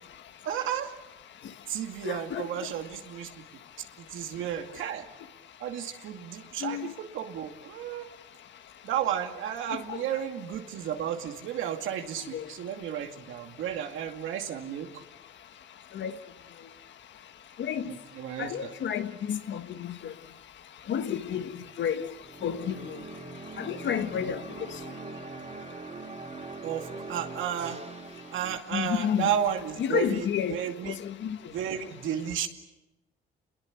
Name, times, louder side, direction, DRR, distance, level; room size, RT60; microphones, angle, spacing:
voice 1, 0.4-0.9 1.7-3.3 4.0-5.1 5.6-8.1 8.8-15.0 17.9-18.7 26.6-27.8 28.3-30.9 31.5-32.5, right 9 dB, 85° right, 2.4 m, -33 dB
voice 2, 2.0-2.4 6.6-6.9 9.9-10.0 12.3-12.5 16.0-16.1 17.6-17.9 18.4-20.1 20.9-21.5 21.8-22.1 22.4-23.0 23.6-24.4 28.7-29.3 29.8-30.6 30.9-31.4, left 8 dB, 70° left, 1.6 m, -30 dB
sound 1, 22.2-28.6, right 3 dB, 35° right, 4.0 m, -42 dB
28.0 x 22.0 x 8.5 m
cardioid pair, 90°, 20 cm